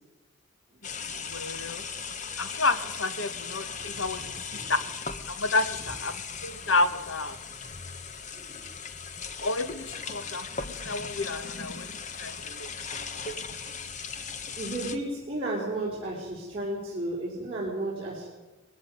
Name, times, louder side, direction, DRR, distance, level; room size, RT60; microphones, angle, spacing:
sound 1, 0.8-15.0, left 5 dB, 35° left, 1.2 m, -38 dB
voice 1, 1.1-1.9 2.4-4.9 5.3-7.4 9.4-11.9 12.2-12.7, left 3 dB, 75° left, 12 dB, 1.4 m, -30 dB
voice 2, 2.2-2.5 3.9-4.0 4.5-4.7 8.4-8.6 14.6-18.3, right 1 dB, 25° right, -7 dB, 4.9 m, -33 dB
20.5 x 15.5 x 9.5 m, 1.2 s
head